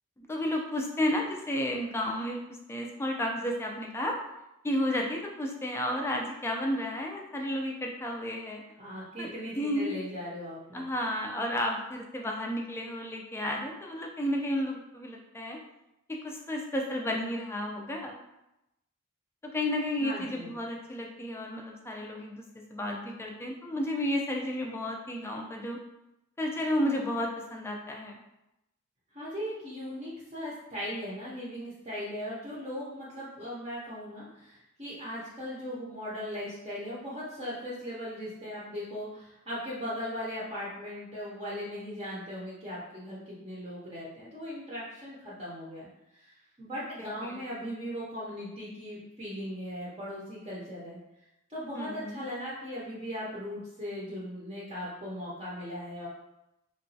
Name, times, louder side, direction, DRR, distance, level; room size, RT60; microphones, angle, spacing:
voice 1, 0.3-2.4 2.7-4.2 4.6-8.6 9.2-9.9 10.7-15.6 16.1-18.2 19.5-22.4 22.7-25.8 26.4-28.2 47.0-47.4 51.7-52.2, left 1 dB, 10° left, 0 dB, 0.3 m, -32 dB
voice 2, 8.8-10.9 20.0-20.5 29.1-51.0 51.5-56.1, equal, 25° right, -7 dB, 0.6 m, -38 dB
2.9 x 2.2 x 2.6 m, 0.89 s
head